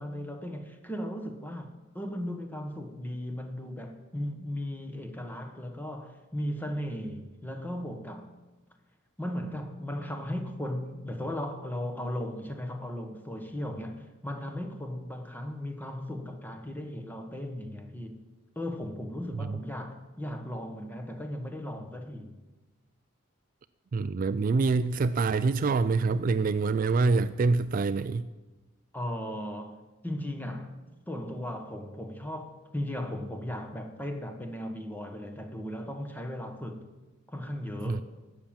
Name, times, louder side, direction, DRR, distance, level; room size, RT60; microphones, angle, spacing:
voice 1, 0.0-8.3 9.2-18.2 18.5-22.3 28.9-36.9 37.3-38.0, left 1 dB, 10° left, 1.1 m, -36 dB
voice 2, 23.9-28.3 37.8-38.0, right 4 dB, 40° right, 0.3 m, -26 dB
12.5 x 7.3 x 8.7 m
head